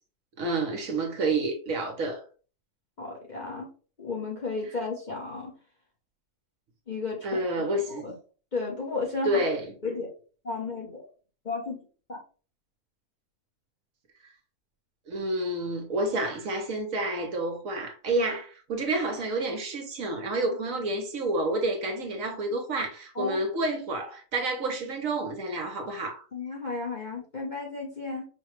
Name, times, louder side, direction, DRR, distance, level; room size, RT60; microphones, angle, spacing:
voice 1, 0.4-2.2 7.2-8.1 9.2-9.7 15.1-26.2, right 2 dB, 65° right, 1.2 m, -29 dB
voice 2, 3.0-3.7 4.0-5.5 6.9-7.4 7.9-8.1 8.5-9.5 9.8-10.1 10.4-11.1 11.4-11.8 12.1-12.2 23.1-23.4 26.3-28.2, left 3 dB, 35° left, 1.0 m, -33 dB
5.1 x 2.2 x 3.1 m
omnidirectional pair, 1.6 m